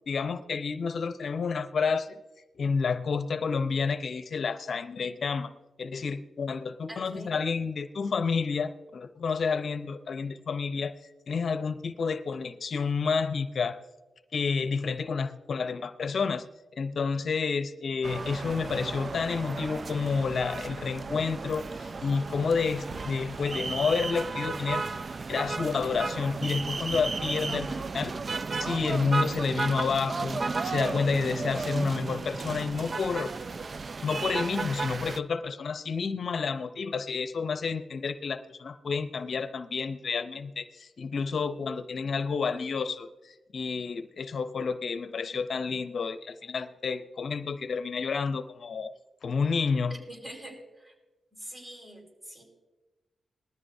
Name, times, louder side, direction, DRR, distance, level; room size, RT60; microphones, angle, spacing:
voice 1, 0.1-2.2 2.6-5.5 5.8-10.9 11.3-13.8 14.3-16.4 16.8-24.8 25.3-27.7 27.9-28.1 28.6-33.3 34.0-48.9 49.2-49.9, left 5 dB, 65° left, 11 dB, 0.6 m, -30 dB
voice 2, 6.9-7.3 27.4-27.8 49.9-50.9 51.3-52.4, right 1 dB, 30° right, 1 dB, 5.0 m, -44 dB
sound 1, 18.0-35.2, right 4 dB, 50° right, 0.4 m, -34 dB
20.0 x 13.5 x 2.7 m, 1.1 s
cardioid pair, 65°, 0 cm